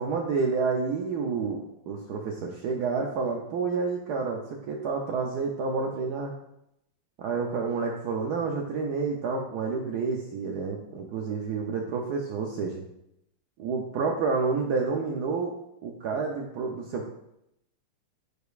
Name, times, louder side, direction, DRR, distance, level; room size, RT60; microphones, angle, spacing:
voice 1, 0.0-4.4 4.7-6.3 7.2-12.8 13.6-15.6 15.8-17.1, right 4 dB, 75° right, 1 dB, 0.9 m, -29 dB
9.2 x 5.0 x 2.4 m, 0.80 s
omnidirectional pair, 2.4 m